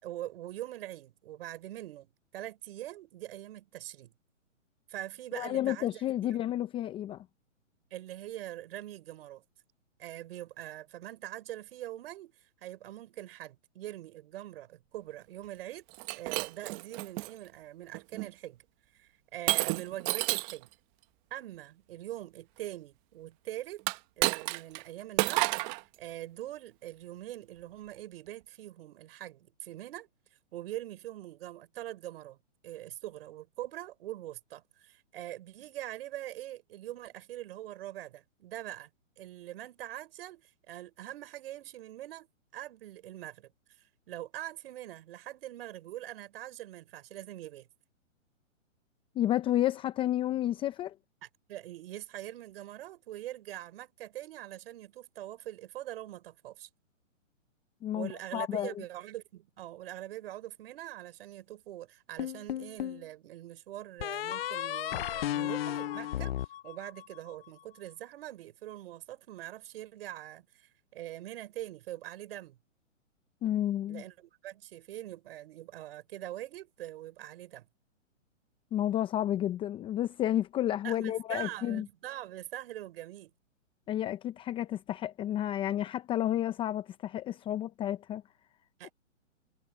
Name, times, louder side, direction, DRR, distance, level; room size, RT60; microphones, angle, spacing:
voice 1, 0.0-4.1 4.9-6.0 6.3-6.4 7.9-9.5 10.0-15.9 16.1-18.6 18.9-20.7 21.3-23.8 24.2-25.7 26.0-30.1 30.5-32.4 32.6-38.9 39.2-42.3 42.5-43.5 44.1-47.7 51.2-56.7 57.9-66.3 66.6-72.6 73.9-77.7 80.8-83.3 88.8-88.9, right 14 dB, 50° right, 5.9 m, -43 dB
voice 2, 5.3-7.2 49.2-50.9 57.8-58.7 73.4-74.0 78.7-81.9 83.9-88.2 88.8-88.9, left 12 dB, 15° left, 0.8 m, -31 dB
Shatter, 15.9-17.3 17.9-18.3 19.5-20.6 23.8-24.8 25.2-25.8, right 26 dB, 25° right, 1.3 m, -30 dB
sound 1, 62.2-63.0 64.0-67.3, left 12 dB, 50° left, 0.6 m, -34 dB
hypercardioid pair, 140°, 39 cm